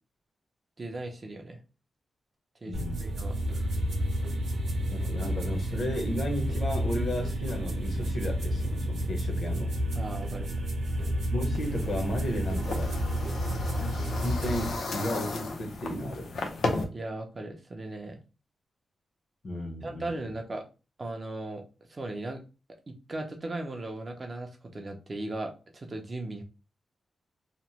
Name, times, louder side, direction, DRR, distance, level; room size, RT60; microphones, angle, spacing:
voice 1, 0.8-1.6 2.6-3.7 10.0-10.5 16.9-18.2 19.8-20.7 21.0-21.6 21.9-22.4 22.9-26.4, right 2 dB, 25° right, 0.4 m, -37 dB
voice 2, 2.6-2.9 4.9-9.7 11.3-12.9 14.2-16.3 19.4-20.3, left 1 dB, 45° left, 0.7 m, -34 dB
sound 1, 2.7-14.7, equal, 75° right, 0.6 m, -30 dB
sound 2, 11.5-16.8, left 3 dB, 80° left, 0.6 m, -35 dB
2.8 x 2.0 x 2.9 m
wide cardioid pair, 175°, 0 cm